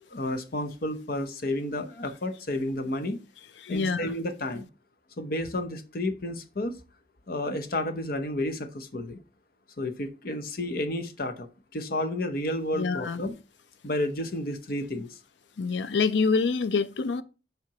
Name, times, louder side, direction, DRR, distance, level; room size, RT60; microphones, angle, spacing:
voice 1, 0.1-3.2 3.7-4.7 5.2-6.7 7.3-9.2 9.8-13.3 13.8-15.2, left 1 dB, 55° left, 0.8 m, -31 dB
voice 2, 3.6-4.0 12.7-13.2 15.6-17.2, left 4 dB, 85° left, 0.5 m, -26 dB
7.5 x 5.1 x 2.9 m
head